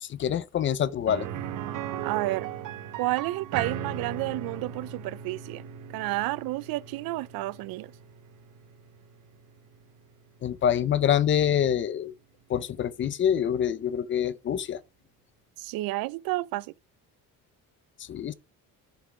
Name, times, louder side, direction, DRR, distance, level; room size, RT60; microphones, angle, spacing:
voice 1, 0.0-1.3 10.4-12.1 12.5-14.8 18.1-18.3, left 9 dB, 35° left, 0.5 m, -26 dB
sound 1, 1.1-10.8 11.2-11.3 13.7-13.8, right 9 dB, 60° right, 1.0 m, -38 dB
voice 2, 2.0-2.5 3.0-5.6 5.9-7.9 15.6-16.7, right 18 dB, 85° right, 0.5 m, -30 dB
8.0 x 6.0 x 4.7 m
cardioid pair, 175°, 35 cm